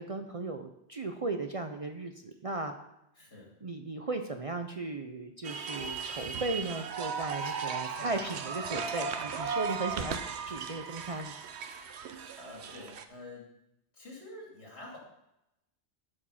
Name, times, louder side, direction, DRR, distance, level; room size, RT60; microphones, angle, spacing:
voice 1, 0.0-2.7 3.6-11.3, right 3 dB, 40° right, 6 dB, 0.6 m, -36 dB
voice 2, 3.2-3.5 7.8-8.1 12.3-13.5 13.9-15.0, left 2 dB, 75° left, -2 dB, 3.0 m, -47 dB
sound 1, 5.4-13.0, right 5 dB, 80° right, 1.0 m, -36 dB
12.5 x 5.0 x 5.6 m, 0.86 s
omnidirectional pair, 1.1 m